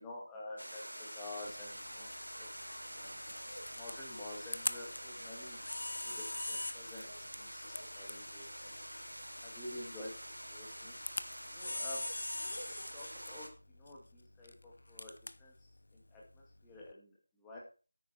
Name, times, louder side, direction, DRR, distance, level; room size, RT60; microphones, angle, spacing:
voice 1, 0.0-2.1 2.4-2.5 2.8-3.2 3.8-5.6 5.9-8.7 9.4-10.1 10.5-11.0 11.5-12.1 12.8-17.6, left 2 dB, 5° left, -4 dB, 2.2 m, -50 dB
sound 1, 0.6-13.5, equal, 90° right, 3.8 m, -47 dB
Camera, 1.4-16.9, left 2 dB, 55° left, 0.8 m, -44 dB
10.0 x 9.0 x 4.4 m, 0.35 s
figure-of-eight pair, 165°, 0 cm